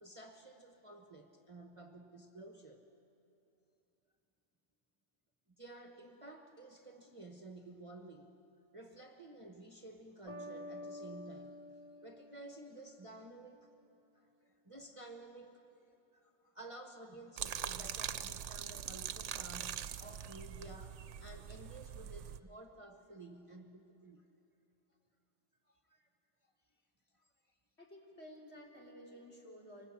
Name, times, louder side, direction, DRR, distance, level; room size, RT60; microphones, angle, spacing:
voice 1, 0.0-2.9 5.5-8.3 8.7-11.6 12.0-13.7 14.1-24.2 25.7-26.1 26.4-26.5 27.1-27.5, right 2 dB, 25° right, 4 dB, 1.1 m, -53 dB
sound 1, 10.3-13.1, left 1 dB, 30° left, 2.1 m, -49 dB
sound 2, 17.4-22.4, right 9 dB, 65° right, 1.0 m, -43 dB
voice 2, 27.8-29.9, equal, 55° left, -2 dB, 3.8 m, -53 dB
24.0 x 18.5 x 8.6 m, 2.9 s
omnidirectional pair, 1.3 m